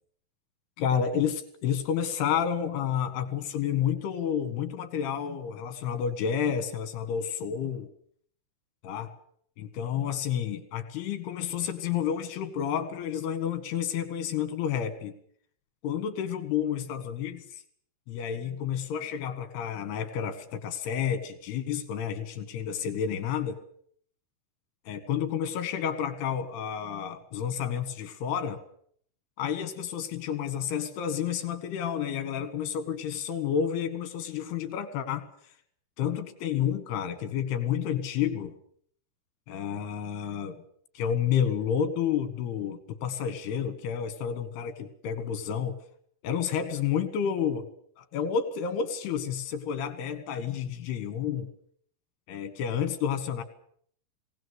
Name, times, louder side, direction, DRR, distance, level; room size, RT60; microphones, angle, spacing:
voice 1, 0.8-7.9 8.8-9.1 9.6-15.1 15.8-17.4 18.1-23.6 24.9-28.6 29.4-35.3 36.0-38.5 39.5-40.6 41.0-45.8 46.2-47.7 48.0-51.5 52.3-53.4, left 8 dB, 65° left, 10 dB, 3.5 m, -30 dB
20.5 x 18.5 x 8.0 m, 0.63 s
omnidirectional pair, 5.5 m